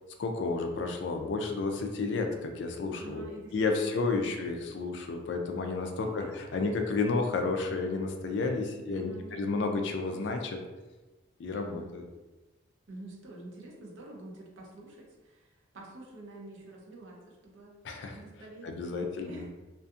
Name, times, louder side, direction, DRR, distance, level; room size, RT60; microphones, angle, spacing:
voice 1, 0.2-3.2 3.5-6.2 6.5-10.6 11.4-12.0 17.8-18.2 18.6-19.4, left 3 dB, 60° left, 4 dB, 0.3 m, -31 dB
voice 2, 2.9-3.6 3.8-4.4 6.0-6.6 8.9-9.6 10.0-10.2 10.5-10.7 11.5-12.0 12.9-17.7 18.1-19.5, right 2 dB, 75° right, -1 dB, 0.6 m, -48 dB
2.6 x 2.4 x 2.3 m, 1.1 s
head